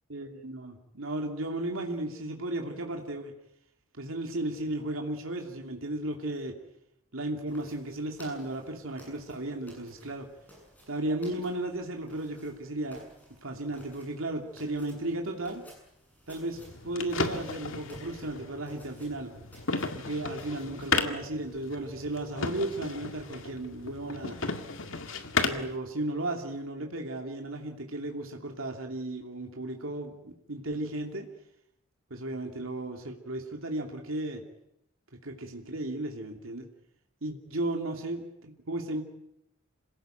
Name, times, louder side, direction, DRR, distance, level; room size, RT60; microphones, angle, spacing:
voice 1, 0.1-3.3 4.0-6.6 7.1-10.3 10.9-13.1 13.4-15.6 16.3-16.6 16.8-19.3 19.9-24.4 25.4-31.3 32.1-34.4 35.2-36.7 37.2-39.0, right 1 dB, 80° right, 2 dB, 2.7 m, -35 dB
sound 1, 7.4-21.0, equal, 10° left, 7.8 m, -55 dB
sound 2, 16.5-25.8, left 4 dB, 75° left, 2.0 m, -34 dB
27.0 x 18.0 x 9.2 m, 0.82 s
head